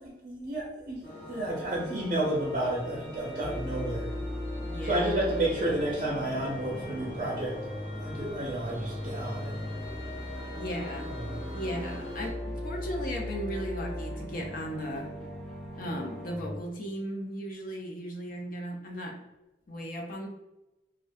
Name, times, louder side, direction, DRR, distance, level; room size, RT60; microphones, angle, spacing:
voice 1, 0.0-4.1 4.8-7.5 8.0-9.6 11.0-11.2, right 1 dB, 45° right, -5 dB, 0.5 m, -31 dB
sound 1, 1.0-12.3, left 1 dB, 75° left, 1.1 m, -43 dB
sound 2, 3.4-16.6, equal, ahead, 0.5 m, -38 dB
voice 2, 4.6-5.2 10.6-11.1 11.5-15.1 15.8-19.2 19.7-20.3, equal, 50° left, 1 dB, 0.5 m, -36 dB
2.4 x 2.1 x 2.5 m, 0.99 s
head